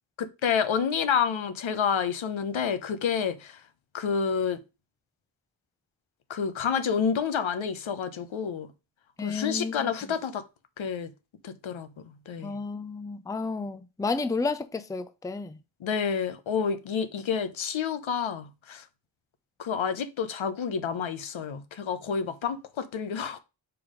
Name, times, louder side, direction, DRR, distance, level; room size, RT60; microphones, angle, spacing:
voice 1, 0.2-3.6 3.9-4.6 6.3-8.7 9.2-10.4 10.8-11.1 11.4-11.9 12.3-12.6 15.8-18.8 19.6-23.4, left 6 dB, 75° left, 0.9 m, -29 dB
voice 2, 9.2-9.9 12.4-15.6, left 4 dB, 10° left, 0.5 m, -31 dB
5.3 x 4.7 x 5.0 m
wide cardioid pair, 115°, 47 cm